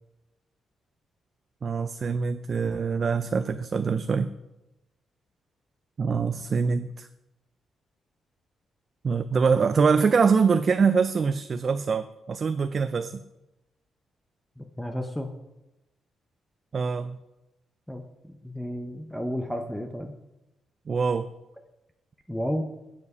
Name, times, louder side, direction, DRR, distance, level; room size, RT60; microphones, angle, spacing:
voice 1, 1.6-4.3 6.0-7.1 9.0-13.2 16.7-17.2 20.9-21.3, right 5 dB, 40° right, 11 dB, 0.4 m, -24 dB
voice 2, 14.6-15.3 17.9-20.2 22.3-22.6, equal, ahead, 5 dB, 0.7 m, -32 dB
9.6 x 7.1 x 5.4 m, 0.95 s
cardioid pair, 135°, 0 cm